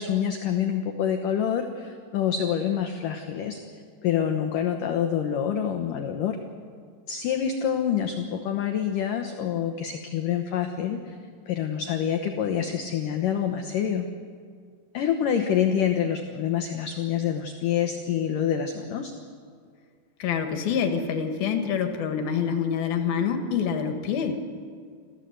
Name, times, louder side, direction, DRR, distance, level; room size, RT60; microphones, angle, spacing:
voice 1, 0.0-3.6 4.0-6.4 7.1-11.2 11.5-14.1 14.9-19.1, left 8 dB, 85° left, 5 dB, 1.8 m, -26 dB
voice 2, 20.2-24.4, left 7 dB, 65° left, 6 dB, 2.9 m, -26 dB
26.0 x 15.0 x 8.0 m, 2.1 s
omnidirectional pair, 5.4 m